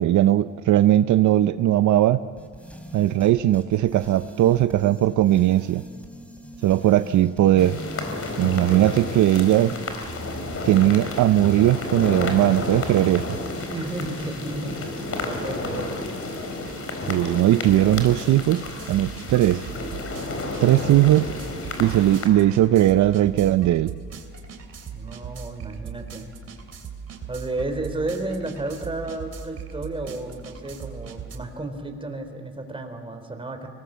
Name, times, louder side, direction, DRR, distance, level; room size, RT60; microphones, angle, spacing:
voice 1, 0.0-2.2 2.9-5.8 6.6-7.8 8.4-9.7 10.7-13.4 17.1-18.6 18.9-19.7 20.6-21.3 21.8-23.9, right 13 dB, 75° right, 12 dB, 0.6 m, -19 dB
sound 1, 2.4-19.6, equal, 5° left, 3.6 m, -42 dB
sound 2, 7.6-22.3, left 2 dB, 50° left, 4.3 m, -32 dB
voice 2, 13.7-14.9 15.2-16.0 24.9-26.3 27.3-33.7, right 2 dB, 15° right, 5 dB, 3.7 m, -32 dB
sound 3, 15.7-15.8 16.2-31.4, right 6 dB, 55° right, 3.0 m, -39 dB
24.5 x 19.0 x 7.5 m, 2.2 s
cardioid pair, 90°, 30 cm